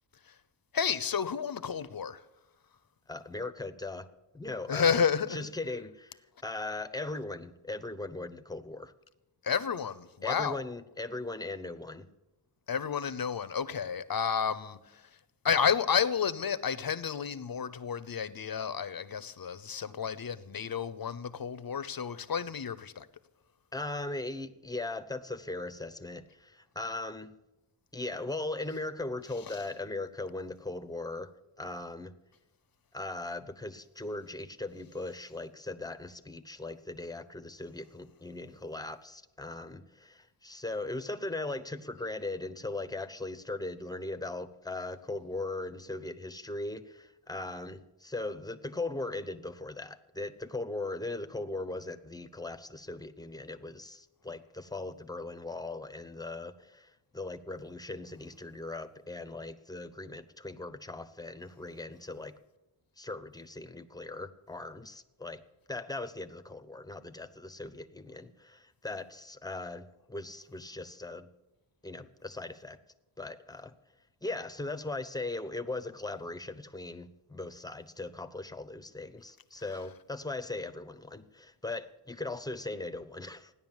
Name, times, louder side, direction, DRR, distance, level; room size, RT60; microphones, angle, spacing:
voice 1, 0.7-2.2 4.7-5.5 9.4-10.6 12.7-15.1 15.4-23.1 29.5-29.6, left 7 dB, 45° left, 0.9 m, -31 dB
voice 2, 3.1-4.1 4.3-5.0 5.3-6.2 6.4-8.9 10.2-12.1 23.7-27.3 27.9-31.3 31.6-32.1 32.9-62.3 63.0-65.4 65.7-71.3 71.8-72.8 73.2-73.7 74.2-83.5, left 2 dB, 10° left, 0.9 m, -39 dB
15.0 x 10.0 x 7.3 m
cardioid pair, 85°, 49 cm